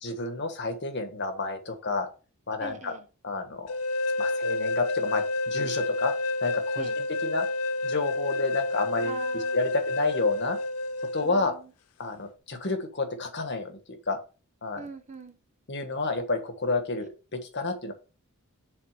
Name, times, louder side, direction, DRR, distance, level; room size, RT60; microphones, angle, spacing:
voice 1, 0.0-2.1 2.5-2.9 3.2-3.7 4.2-6.1 6.4-7.5 7.8-9.2 9.5-10.6 11.1-11.5 12.0-14.2 14.6-14.8 15.7-17.9, left 3 dB, 50° left, 7 dB, 1.5 m, -30 dB
voice 2, 2.6-3.0 6.8-7.0 9.0-9.6 11.2-11.7 14.8-15.4, right 4 dB, 30° right, 8 dB, 1.0 m, -43 dB
sound 1, 3.7-11.3, left 2 dB, 85° left, 0.5 m, -29 dB
7.4 x 4.0 x 6.7 m, 0.34 s
head